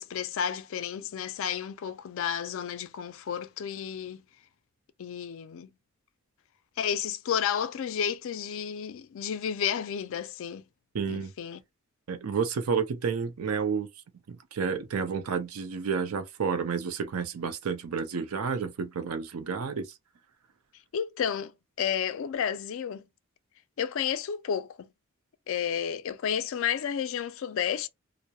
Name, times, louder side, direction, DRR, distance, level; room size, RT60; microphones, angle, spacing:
voice 1, 0.0-4.2 5.0-5.7 6.8-10.6 11.1-11.6 20.9-21.5 21.8-23.0 23.8-24.9 25.5-27.9, left 8 dB, 65° left, 0.4 m, -31 dB
voice 2, 10.9-11.3 12.1-13.9 14.3-19.9, right 5 dB, 80° right, 0.5 m, -30 dB
2.2 x 2.0 x 2.7 m
head